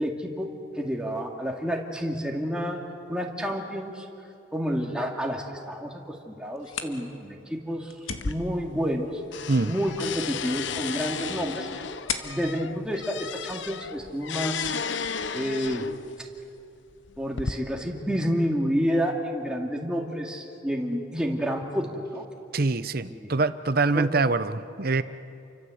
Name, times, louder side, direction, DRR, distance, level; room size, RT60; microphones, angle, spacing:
voice 1, 0.0-2.8 3.1-4.1 4.5-7.9 8.2-9.2 9.6-11.8 12.2-14.7 15.3-15.9 16.2-16.3 17.2-22.2 23.1-23.3 23.9-24.1, equal, 5° right, 0 dB, 2.4 m, -29 dB
sound 1, 6.4-14.0, left 6 dB, 90° left, 1.9 m, -41 dB
sound 2, 8.1-9.0 9.3-16.1 16.9-17.5, left 5 dB, 65° left, 0.8 m, -34 dB
voice 2, 22.5-25.0, right 3 dB, 50° right, 13 dB, 0.8 m, -24 dB
29.5 x 24.5 x 8.0 m, 2.7 s
head